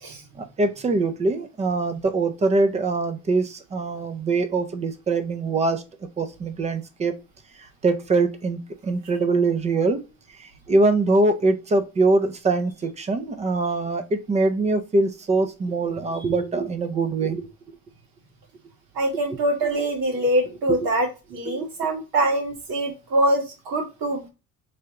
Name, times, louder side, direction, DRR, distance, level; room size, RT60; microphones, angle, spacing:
voice 1, 0.4-5.8 6.2-7.1 7.8-10.0 10.4-17.4 21.5-21.6, right 3 dB, 20° right, 8 dB, 0.4 m, -23 dB
voice 2, 19.0-24.3, right 1 dB, 80° right, 1 dB, 1.8 m, -24 dB
3.4 x 2.8 x 3.6 m, 0.28 s
cardioid pair, 155°, 35 cm